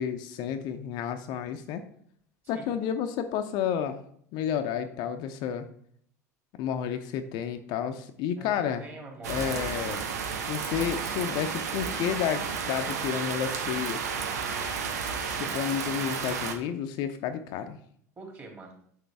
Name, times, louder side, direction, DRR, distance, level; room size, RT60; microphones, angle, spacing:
voice 1, 0.0-1.8 2.5-4.0 4.3-5.7 6.6-8.8 9.3-10.0 10.5-14.0 15.2-17.8, left 8 dB, 55° left, 8 dB, 0.7 m, -31 dB
voice 2, 8.4-10.2 18.2-18.7, right 3 dB, 25° right, -1 dB, 3.1 m, -45 dB
sound 1, 9.2-16.5, right 6 dB, 75° right, 1.0 m, -32 dB
7.1 x 6.2 x 3.5 m, 0.63 s
hypercardioid pair, 75°, 9 cm